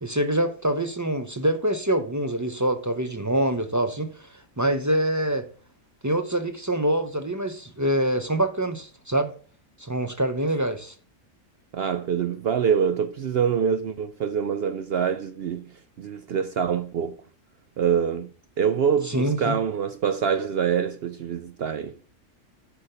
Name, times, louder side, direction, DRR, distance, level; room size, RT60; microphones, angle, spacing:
voice 1, 0.0-4.1 4.6-5.5 6.0-9.3 9.8-10.9 19.0-19.6, right 1 dB, 20° right, 0.4 m, -25 dB
voice 2, 11.7-15.7 16.0-17.2 17.8-18.3 18.6-22.0, right 7 dB, 65° right, 0.6 m, -25 dB
9.7 x 4.3 x 6.6 m
omnidirectional pair, 1.4 m